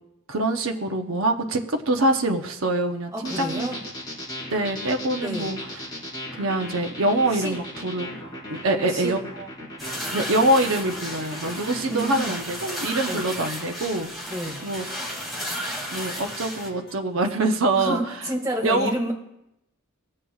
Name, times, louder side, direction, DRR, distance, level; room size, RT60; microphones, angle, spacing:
voice 1, 0.3-3.7 4.5-5.6 6.3-8.2 8.5-9.2 10.1-14.3 14.6-14.8 15.9-18.0 18.6-18.9, right 2 dB, 70° right, 3 dB, 0.8 m, -24 dB
voice 2, 3.1-3.8 5.2-5.5 7.3-7.6 8.6-9.1 11.9-12.3 13.1-13.2 14.3-14.6 17.8-19.1, right 1 dB, 15° right, -1 dB, 1.9 m, -30 dB
sound 1, 3.2-12.2, left 1 dB, 20° left, 4.4 m, -37 dB
sound 2, 9.8-16.7, equal, ahead, 2.3 m, -33 dB
sound 3, 10.4-17.0, left 2 dB, 60° left, 1.7 m, -48 dB
20.0 x 7.5 x 2.4 m, 0.85 s
head